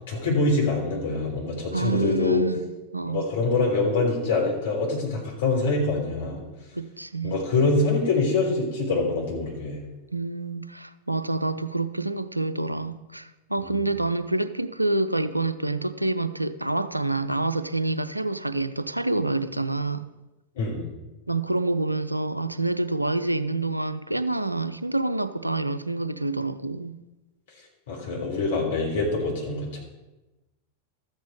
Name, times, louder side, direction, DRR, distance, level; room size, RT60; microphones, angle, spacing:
voice 1, 0.1-2.4 3.0-6.4 7.2-9.8 13.6-13.8 20.5-20.9 27.9-29.8, left 3 dB, 60° left, 3.5 m, -25 dB
voice 2, 1.7-2.7 2.9-3.2 6.7-7.4 10.1-20.1 21.3-27.0, right 2 dB, 85° right, 0.5 m, -27 dB
13.0 x 8.2 x 4.7 m
figure-of-eight pair, 90°, 0 cm